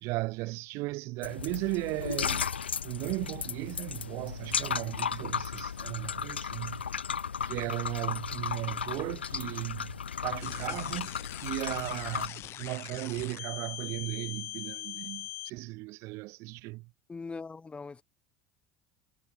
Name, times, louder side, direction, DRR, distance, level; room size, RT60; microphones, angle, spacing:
voice 1, 0.0-2.5 2.8-6.8 7.4-11.1 11.4-16.9, right 23 dB, 55° right, 2.6 m, -36 dB
sound 1, 1.2-12.3, left 7 dB, 80° left, 5.0 m, -35 dB
sound 2, 10.4-15.5, left 15 dB, 50° left, 2.6 m, -42 dB
voice 2, 17.1-18.0, left 4 dB, 20° left, 7.4 m, -40 dB
figure-of-eight pair, 70°, 6 cm